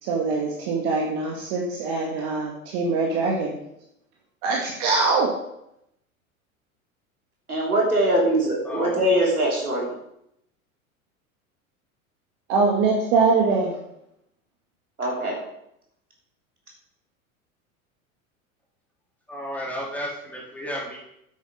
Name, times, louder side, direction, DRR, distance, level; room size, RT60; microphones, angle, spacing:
voice 1, 0.0-3.6 4.4-5.3 12.5-13.8, right 4 dB, 50° right, -1 dB, 2.1 m, -23 dB
voice 2, 7.5-9.9 15.0-15.4, right 1 dB, 85° right, -2 dB, 3.3 m, -22 dB
voice 3, 8.7-9.3 19.3-21.0, equal, 5° left, -4 dB, 3.7 m, -33 dB
9.2 x 8.1 x 5.1 m, 0.79 s
figure-of-eight pair, 80°, 43 cm